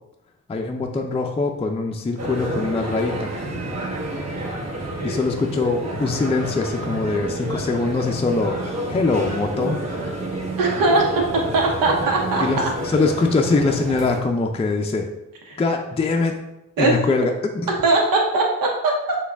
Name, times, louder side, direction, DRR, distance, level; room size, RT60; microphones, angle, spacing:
voice 1, 0.5-3.3 5.0-8.6 8.9-10.0 12.4-15.1 15.6-16.4 16.8-17.7, left 3 dB, 20° left, 2 dB, 0.4 m, -23 dB
sound 1, 2.2-14.2, right 1 dB, 50° right, 1.0 m, -29 dB
voice 2, 10.6-11.2 11.5-12.4 15.5-15.6 16.8-16.9 17.8-19.2, right 2 dB, 90° right, 0 dB, 0.8 m, -20 dB
5.9 x 2.3 x 3.4 m, 0.92 s
cardioid pair, 70°, 33 cm